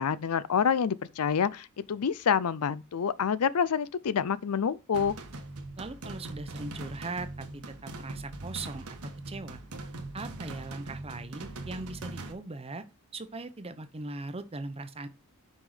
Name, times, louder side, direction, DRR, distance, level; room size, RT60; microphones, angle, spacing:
voice 1, 0.0-5.1, left 7 dB, 75° left, 0.5 m, -27 dB
sound 1, 4.9-12.3, right 2 dB, 80° right, 1.3 m, -41 dB
voice 2, 5.8-9.6 10.1-12.8 13.1-15.1, right 3 dB, 25° right, 0.7 m, -39 dB
6.3 x 5.5 x 4.9 m
head